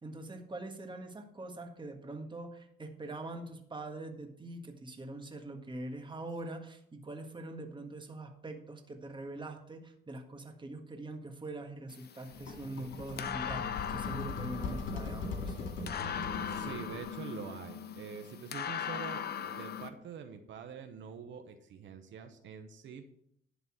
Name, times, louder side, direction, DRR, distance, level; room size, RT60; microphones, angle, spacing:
voice 1, 0.0-15.6 16.0-16.1, right 2 dB, 25° right, 4 dB, 1.6 m, -43 dB
sound 1, 11.9-19.9, left 8 dB, 55° left, 0.9 m, -40 dB
sound 2, 12.3-17.2, left 3 dB, 75° left, 2.3 m, -40 dB
voice 2, 16.5-23.0, right 7 dB, 70° right, 6 dB, 1.0 m, -45 dB
11.0 x 4.1 x 7.5 m, 0.72 s
cardioid pair, 90°, 20 cm